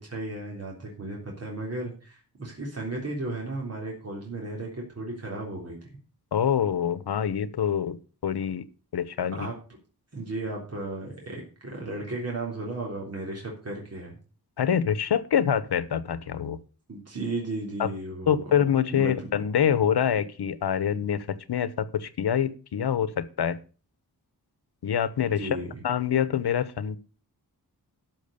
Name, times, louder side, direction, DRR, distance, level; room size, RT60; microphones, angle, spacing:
voice 1, 0.0-5.8 9.2-9.5 10.1-14.2 16.9-18.4 18.9-19.3 25.4-25.8, right 2 dB, 40° right, -2 dB, 3.6 m, -35 dB
voice 2, 6.3-8.0 8.2-8.6 8.9-9.5 14.6-16.6 17.8-17.9 18.3-23.6 24.8-27.0, left 8 dB, 85° left, 15 dB, 1.1 m, -25 dB
12.5 x 6.2 x 6.7 m, 0.36 s
wide cardioid pair, 170°, 38 cm